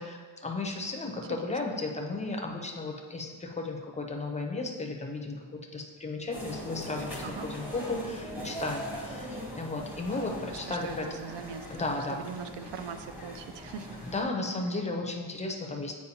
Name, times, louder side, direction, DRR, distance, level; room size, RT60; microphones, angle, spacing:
voice 1, 0.0-11.1 11.7-12.2 14.0-15.9, left 3 dB, 15° left, 2 dB, 0.5 m, -34 dB
voice 2, 1.4-1.8 7.2-7.5 10.6-14.0, right 7 dB, 70° right, 9 dB, 0.5 m, -41 dB
sound 1, 6.3-14.2, equal, 5° right, 0.9 m, -41 dB
8.3 x 4.6 x 2.8 m, 1.5 s
wide cardioid pair, 180°, 44 cm